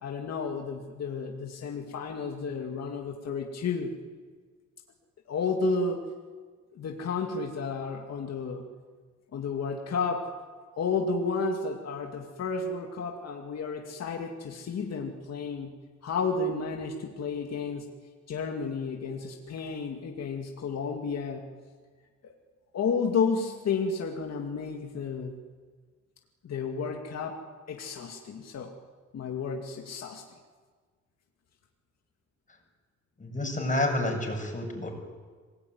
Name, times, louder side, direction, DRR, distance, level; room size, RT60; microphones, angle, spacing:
voice 1, 0.0-3.9 5.3-6.0 6.7-8.7 9.3-10.3 10.8-15.7 16.0-17.9 18.3-21.4 22.2-22.3 22.7-25.3 26.4-27.4 27.7-28.7 29.1-30.2, left 4 dB, 55° left, 2 dB, 2.5 m, -32 dB
voice 2, 33.2-34.9, left 1 dB, 25° left, 2 dB, 7.6 m, -29 dB
26.0 x 19.0 x 9.6 m, 1.5 s
cardioid pair, 90°, 30 cm